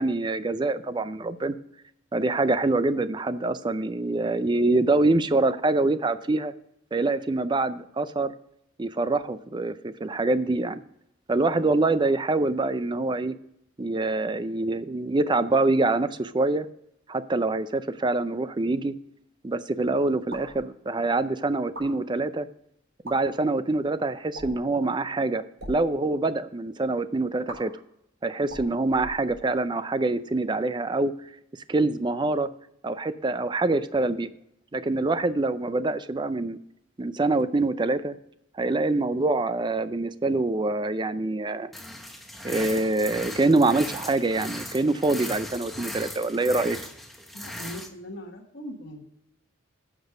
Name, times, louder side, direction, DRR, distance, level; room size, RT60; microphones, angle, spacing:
voice 1, 0.0-1.5 2.1-6.5 6.9-8.3 8.8-10.8 11.3-13.4 13.8-16.7 17.1-18.9 19.4-22.5 23.0-27.7 28.2-31.1 31.7-32.5 32.8-34.3 34.7-36.6 37.0-38.2 38.6-41.7 42.4-46.8, right 2 dB, 20° right, 14 dB, 0.4 m, -25 dB
sound 1, 20.3-20.6 21.6-21.9 22.9-23.2 24.3-24.7 25.5-25.8 27.5-27.6 28.4-29.6, right 1 dB, 70° right, 4.0 m, -40 dB
sound 2, 41.7-47.9, left 1 dB, ahead, 0.9 m, -38 dB
voice 2, 47.3-49.0, equal, 55° left, 1 dB, 1.4 m, -40 dB
10.5 x 6.1 x 4.9 m, 0.78 s
head